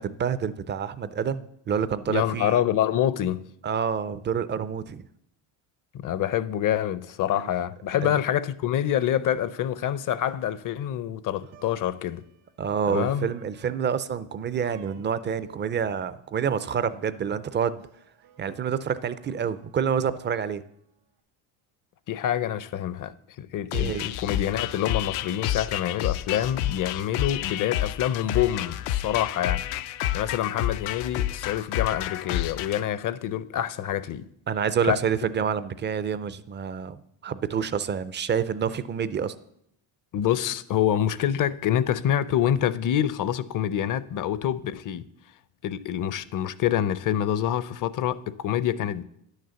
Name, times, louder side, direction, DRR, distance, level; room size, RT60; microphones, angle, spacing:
voice 1, 0.0-2.6 3.6-5.0 8.0-8.1 12.6-17.8 18.4-20.6 23.7-24.0 34.5-39.3, right 7 dB, 25° right, 0.4 m, -28 dB
voice 2, 2.1-3.4 5.9-12.2 12.9-13.3 22.1-29.6 30.1-34.3 34.8-35.0 40.1-45.0 45.6-49.0, left 10 dB, 45° left, 0.6 m, -26 dB
Plucked string instrument, 11.3-20.7, right 4 dB, 80° right, 1.8 m, -55 dB
sound 1, 23.7-32.8, left 13 dB, 85° left, 0.7 m, -29 dB
10.5 x 6.6 x 6.9 m
cardioid pair, 120°, 47 cm